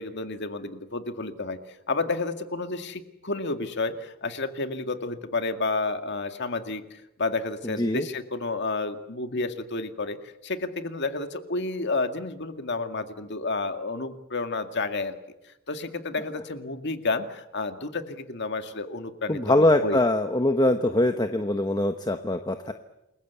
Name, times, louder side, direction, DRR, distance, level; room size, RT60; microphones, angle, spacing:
voice 1, 0.0-1.6 1.9-10.2 10.4-15.2 15.7-20.0, left 3 dB, 50° left, 7 dB, 2.1 m, -30 dB
voice 2, 7.6-8.0 19.3-22.7, left 1 dB, 20° left, 7 dB, 1.0 m, -23 dB
29.0 x 21.5 x 8.3 m, 0.92 s
head